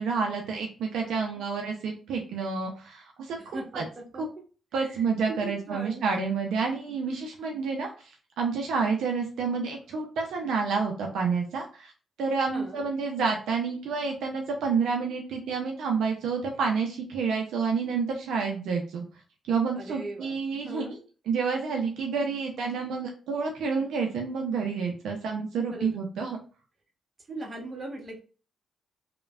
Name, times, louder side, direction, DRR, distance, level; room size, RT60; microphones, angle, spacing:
voice 1, 0.0-3.8 4.7-7.9 8.4-11.9 12.2-19.0 19.5-20.9 21.3-26.4, right 5 dB, 80° right, 1 dB, 0.4 m, -29 dB
voice 2, 1.0-1.4 3.4-4.4 4.8-6.1 12.5-12.9 19.7-20.4 20.6-21.0 25.7-25.9 27.3-28.2, right 2 dB, 40° right, 2 dB, 0.9 m, -40 dB
3.1 x 2.1 x 2.3 m, 0.36 s
supercardioid pair, 60°, 0 cm